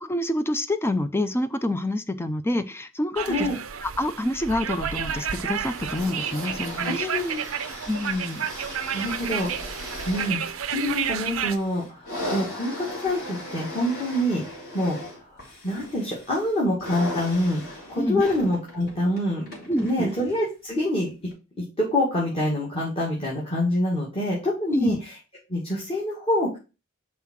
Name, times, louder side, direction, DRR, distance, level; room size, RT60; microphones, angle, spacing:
voice 1, 0.0-3.5 3.8-7.1 7.9-8.5 18.0-18.2 19.7-20.1 24.7-25.0, left 1 dB, 10° left, 11 dB, 0.5 m, -27 dB
voice 2, 3.2-3.6 6.8-7.4 8.9-9.5 10.1-15.0 15.6-21.1 21.8-25.0 25.5-26.6, left 1 dB, 30° left, -5 dB, 2.0 m, -26 dB
sound 1, 3.2-11.6, right 8 dB, 80° right, 0.6 m, -31 dB
sound 2, 5.0-20.5 21.3-21.4, left 1 dB, 50° left, 3.6 m, -38 dB
5.6 x 3.7 x 5.9 m, 0.30 s
head